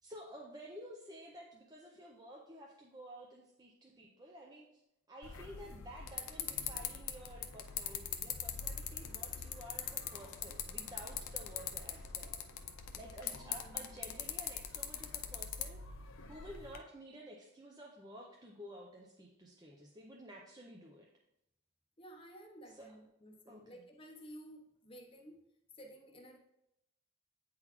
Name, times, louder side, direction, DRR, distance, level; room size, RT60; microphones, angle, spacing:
voice 1, 0.0-4.8 5.1-12.6 13.0-21.1 22.7-22.9 23.5-23.8, equal, 15° right, -2 dB, 0.5 m, -52 dB
sound 1, 5.2-16.8, left 8 dB, 70° left, 0.5 m, -42 dB
Motor vehicle (road), 8.6-13.7, left 1 dB, 55° left, 1.0 m, -61 dB
voice 2, 13.4-14.0 22.0-25.4 25.7-26.4, equal, 25° left, 3 dB, 0.7 m, -54 dB
9.0 x 3.9 x 2.9 m, 0.84 s
head